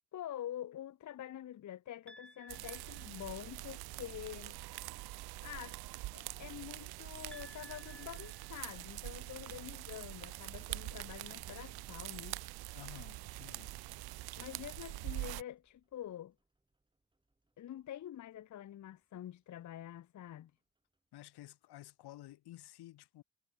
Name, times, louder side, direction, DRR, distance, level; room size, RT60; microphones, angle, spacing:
voice 1, 0.1-4.6 5.4-5.8 6.1-12.4 14.4-16.3 17.6-20.5, left 11 dB, 50° left, 0.8 m, -46 dB
sound 1, 2.1-3.7 7.3-9.3, left 1 dB, 5° left, 1.7 m, -58 dB
sound 2, 2.5-15.4, right 18 dB, 70° right, 0.5 m, -45 dB
voice 2, 12.7-13.7 21.1-23.2, left 15 dB, 80° left, 1.5 m, -53 dB
sound 3, 14.9-21.3, right 2 dB, 10° right, 4.7 m, -70 dB
cardioid pair, 120°, 39 cm